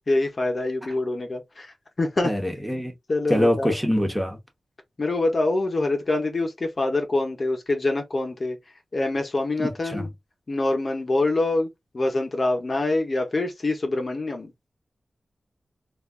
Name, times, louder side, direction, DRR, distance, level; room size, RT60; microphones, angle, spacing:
voice 1, 0.0-2.3 3.1-3.8 5.0-8.6 8.9-10.1 10.5-11.7 11.9-14.5, left 2 dB, 40° left, 0.8 m, -25 dB
voice 2, 2.2-2.9 3.3-4.4 9.6-10.1, equal, 5° right, 0.9 m, -24 dB
3.2 x 2.4 x 2.3 m
wide cardioid pair, 95°, 0 cm